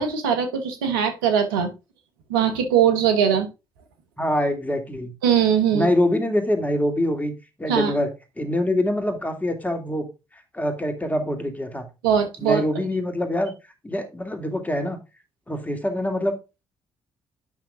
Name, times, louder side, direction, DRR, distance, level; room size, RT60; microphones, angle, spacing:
voice 1, 0.0-1.7 2.3-3.5 5.2-5.9 7.7-7.9 12.0-12.6, right 8 dB, 90° right, 6 dB, 1.1 m, -20 dB
voice 2, 4.2-5.1 5.7-7.3 7.6-8.1 8.4-10.1 10.5-11.9 12.4-13.5 13.8-15.0 15.5-16.3, left 1 dB, 15° left, 6 dB, 2.3 m, -24 dB
8.6 x 6.0 x 3.7 m, 0.27 s
hypercardioid pair, 50°, 11 cm